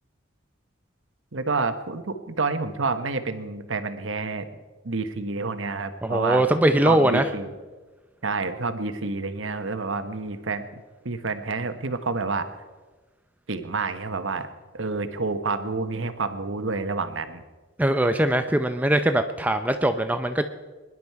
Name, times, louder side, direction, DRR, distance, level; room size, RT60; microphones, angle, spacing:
voice 1, 1.3-4.5 4.8-7.5 8.2-10.7 11.0-12.5 13.5-14.5 14.7-17.4, right 3 dB, 75° right, 9 dB, 1.1 m, -29 dB
voice 2, 6.0-7.3 17.8-20.4, right 1 dB, 10° right, 8 dB, 0.5 m, -21 dB
23.0 x 11.0 x 4.7 m, 1.3 s
head